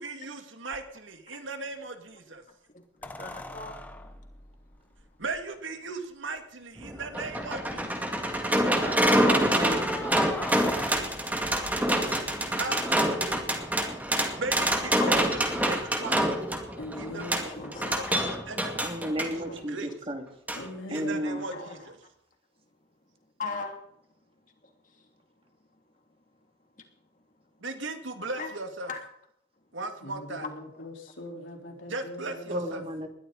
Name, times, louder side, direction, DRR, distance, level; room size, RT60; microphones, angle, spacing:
voice 1, 0.0-2.4 5.2-8.1 12.6-12.9 14.4-16.3 17.0-17.4 17.9-19.0 19.3-19.9 20.9-22.0 27.6-28.9 29.7-30.5 31.9-32.8, right 3 dB, 85° right, 6 dB, 2.4 m, -37 dB
sound 1, 0.7-0.8 3.0-5.4 6.4-6.5 6.8-6.9 7.4-7.9 9.6-12.8 15.3-15.4, left 1 dB, 10° left, 1.1 m, -41 dB
voice 2, 2.7-4.1 7.4-7.5 8.1-8.4 8.6-10.3 15.0-15.1 17.4-18.3 19.4-19.6 21.2-21.9 23.4-23.8 24.6-25.1 28.4-28.5 28.9-29.0 30.8-30.9, left 4 dB, 40° left, 3 dB, 2.9 m, -40 dB
sound 2, 6.8-19.3 20.5-20.6 21.0-21.1, right 1 dB, 10° right, 2.2 m, -26 dB
voice 3, 9.3-9.9 18.8-20.2 20.9-21.4 32.5-33.1, equal, 30° right, 4 dB, 2.5 m, -33 dB
voice 4, 16.8-17.9 20.6-21.3 30.0-32.8, left 1 dB, 80° left, 1 dB, 4.2 m, -41 dB
21.0 x 14.0 x 4.2 m, 0.74 s
head